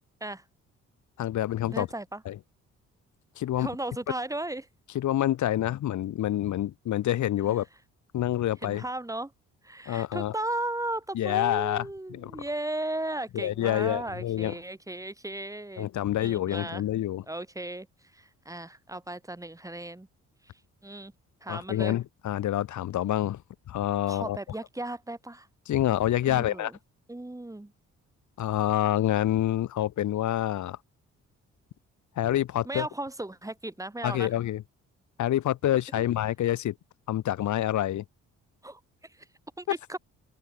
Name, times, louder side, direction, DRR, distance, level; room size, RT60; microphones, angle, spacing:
voice 1, 1.2-1.9 2.3-2.4 3.4-3.7 4.9-7.7 8.1-8.8 9.9-10.3 11.1-12.4 13.3-14.6 15.8-17.2 21.5-23.4 23.7-24.4 25.7-26.7 28.4-30.8 32.2-32.9 34.0-34.6 35.2-36.7 37.1-38.0, left 12 dB, 70° left, 1.9 m, -27 dB
voice 2, 1.7-2.2 3.6-4.7 7.4-7.6 8.6-9.3 9.6-15.9 16.2-16.8 17.3-17.9 18.1-20.1 20.8-21.1 21.4-22.0 24.1-25.5 26.2-26.8 27.1-27.7 32.6-34.3 35.9-36.0 38.6-38.8 39.1-39.3 39.6-40.0, right 1 dB, 10° right, 4.1 m, -36 dB
cardioid pair, 90°, 30 cm